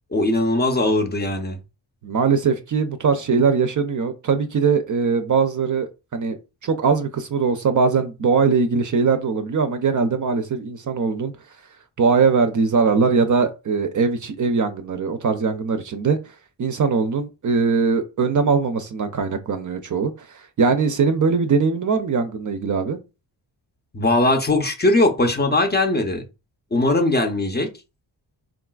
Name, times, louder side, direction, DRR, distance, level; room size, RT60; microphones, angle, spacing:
voice 1, 0.1-1.6 23.9-26.2 26.7-27.7, left 2 dB, 25° left, 0.5 m, -20 dB
voice 2, 2.0-6.4 6.6-11.3 12.0-16.2 16.6-23.0, right 5 dB, 45° right, 0.5 m, -21 dB
3.7 x 2.4 x 2.3 m
cardioid pair, 85°, 45 cm